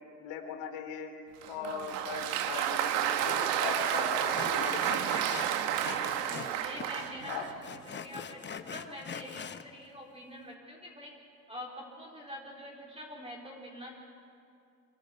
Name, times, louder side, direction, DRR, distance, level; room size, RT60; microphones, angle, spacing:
voice 1, 0.1-1.1 1.5-5.2 7.2-7.5, left 7 dB, 60° left, 5 dB, 3.1 m, -39 dB
Applause, 1.4-7.6, right 10 dB, 60° right, 1.8 m, -31 dB
Sawing, 3.3-3.4 3.7-3.9 4.3-6.6 6.8-9.6, left 7 dB, 20° left, 0.9 m, -43 dB
voice 2, 5.7-7.3 7.9-11.1 11.5-13.9, left 1 dB, 10° right, -2 dB, 4.1 m, -45 dB
25.0 x 12.5 x 9.7 m, 2.4 s
hypercardioid pair, 85°, 49 cm